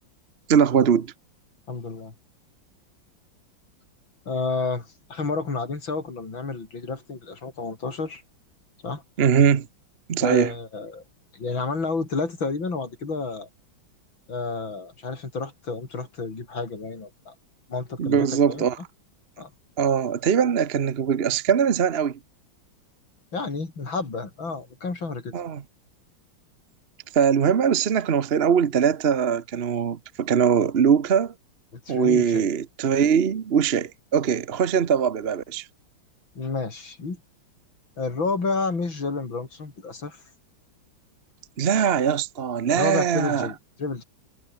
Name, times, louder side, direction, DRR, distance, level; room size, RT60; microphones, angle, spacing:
voice 1, 0.5-1.1 9.2-9.7 10.1-10.5 18.0-18.8 19.8-22.2 25.3-25.6 27.1-31.3 31.9-35.7 41.6-43.5, right 7 dB, 45° right, 0.9 m, -21 dB
voice 2, 1.7-2.1 4.3-8.2 8.8-9.0 10.2-11.0 11.3-13.5 14.3-17.3 17.7-18.6 19.4-19.5 23.3-25.3 31.7-32.5 36.3-37.2 38.0-40.2 42.6-44.0, left 4 dB, 80° left, 5.1 m, -30 dB
omnidirectional pair, 2.1 m